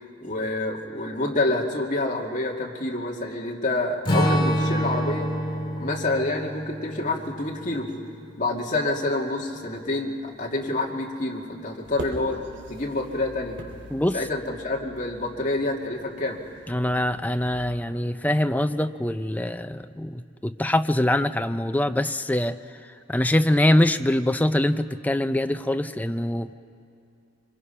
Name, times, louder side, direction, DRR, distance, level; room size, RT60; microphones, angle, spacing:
voice 1, 0.2-5.3 5.8-7.9 8.4-12.4 12.7-13.6 14.1-16.4, left 2 dB, 40° left, -1 dB, 2.3 m, -27 dB
Strum, 4.1-8.7, equal, 25° left, 2.2 m, -27 dB
sound 1, 11.8-17.5, equal, 70° right, 3.1 m, -42 dB
voice 2, 16.7-22.6 23.1-26.5, left 1 dB, 10° left, 9 dB, 0.5 m, -23 dB
25.0 x 24.5 x 5.7 m, 2.5 s
head